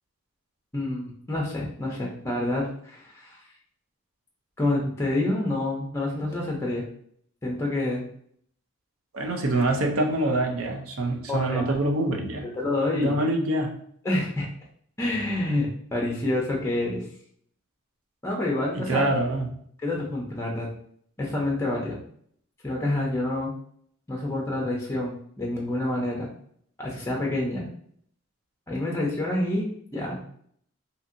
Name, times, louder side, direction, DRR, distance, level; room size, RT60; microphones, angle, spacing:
voice 1, 0.7-3.4 4.6-6.9 7.4-8.0 11.3-11.6 12.6-13.2 14.0-14.5 15.0-17.1 18.2-19.1 19.8-20.7 21.2-22.0 22.6-23.5 24.1-26.3 26.8-27.7 28.7-30.2, left 1 dB, 15° left, -2 dB, 0.5 m, -28 dB
voice 2, 9.1-12.5 12.9-13.7 18.7-19.5, right 2 dB, 85° right, 3 dB, 0.5 m, -25 dB
2.7 x 2.6 x 2.5 m, 0.64 s
head